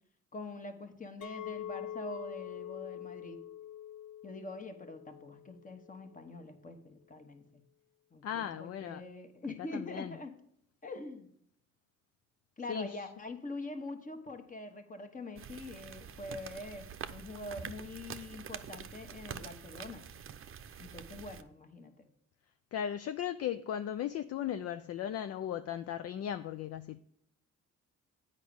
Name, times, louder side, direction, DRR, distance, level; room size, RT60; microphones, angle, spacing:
voice 1, 0.3-3.4 4.2-7.6 8.1-10.3 10.8-11.3 12.6-20.0 20.8-22.1, left 2 dB, 25° left, 1.3 m, -44 dB
Chink clink, 1.2-6.4, left 11 dB, 85° left, 0.8 m, -45 dB
voice 2, 8.2-9.0 9.7-10.2 12.7-13.1 22.7-27.0, left 10 dB, 55° left, 0.4 m, -37 dB
sound 1, 15.4-21.4, right 8 dB, 45° right, 0.7 m, -46 dB
8.3 x 5.1 x 7.0 m
cardioid pair, 90°, 30 cm